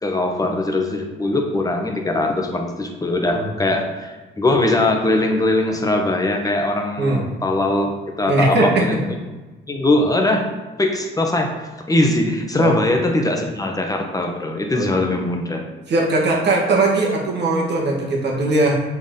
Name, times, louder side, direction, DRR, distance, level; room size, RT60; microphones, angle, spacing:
voice 1, 0.0-7.9 8.2-9.0 9.7-10.5 10.8-15.6, left 2 dB, 15° left, 2 dB, 1.0 m, -21 dB
voice 2, 8.3-9.0 12.6-12.7 14.7-14.9 15.9-18.8, right 2 dB, 60° right, -1 dB, 1.7 m, -19 dB
7.0 x 4.0 x 3.8 m, 1.2 s
cardioid pair, 90°, 20 cm